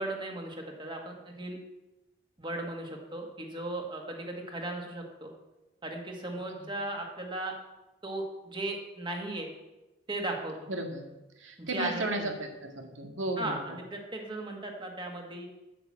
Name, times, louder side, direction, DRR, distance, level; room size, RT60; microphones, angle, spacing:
voice 1, 0.0-1.6 2.4-5.3 5.8-7.5 8.0-9.5 10.1-10.5 11.6-12.4 13.4-15.5, right 2 dB, 25° right, 1 dB, 1.8 m, -36 dB
voice 2, 10.7-11.0 11.4-13.6, right 2 dB, 80° right, 3 dB, 1.9 m, -34 dB
9.0 x 7.9 x 7.5 m, 1.0 s
head